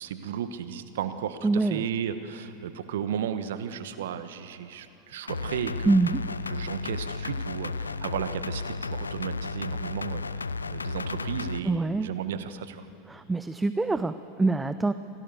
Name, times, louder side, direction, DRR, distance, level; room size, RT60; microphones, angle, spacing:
voice 1, 0.0-6.0 6.5-12.9, right 9 dB, 65° right, 11 dB, 1.2 m, -34 dB
voice 2, 1.4-1.8 5.9-6.2 11.6-12.1 13.1-14.9, right 3 dB, 10° right, 13 dB, 0.6 m, -25 dB
sound 1, 5.3-11.6, left 4 dB, 85° left, 0.5 m, -33 dB
27.0 x 17.5 x 6.8 m, 3.0 s
figure-of-eight pair, 85°, 0 cm